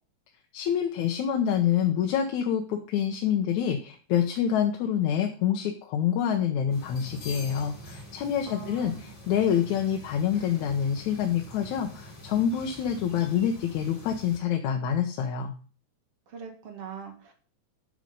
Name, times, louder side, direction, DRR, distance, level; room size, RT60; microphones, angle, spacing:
voice 1, 0.5-15.5, left 9 dB, 70° left, 4 dB, 2.3 m, -27 dB
sound 1, 6.7-14.4, left 1 dB, 35° left, 4.6 m, -45 dB
voice 2, 8.5-9.1 16.3-17.3, right 7 dB, 50° right, 4 dB, 2.7 m, -42 dB
11.0 x 6.7 x 5.3 m, 0.39 s
omnidirectional pair, 3.6 m